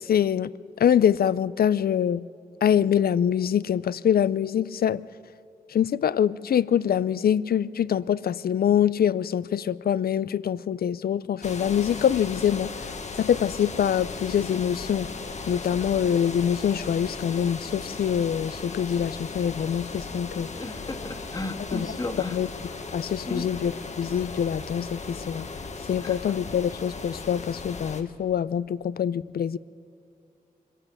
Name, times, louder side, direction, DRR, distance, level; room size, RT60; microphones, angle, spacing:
voice 1, 0.1-0.5 0.8-2.2 2.6-5.0 5.7-12.7 13.2-15.1 15.5-20.5 21.7-21.9 22.3-22.5 22.9-23.7 24.0-25.5 25.9-29.6, left 9 dB, 80° left, 19 dB, 0.5 m, -24 dB
sound 1, 11.4-28.0, left 4 dB, 50° left, 1.3 m, -37 dB
voice 2, 20.5-22.4 23.3-23.5 26.0-26.2, left 2 dB, 25° left, 5 dB, 1.7 m, -34 dB
24.5 x 16.0 x 8.9 m, 2.3 s
wide cardioid pair, 140°, 15 cm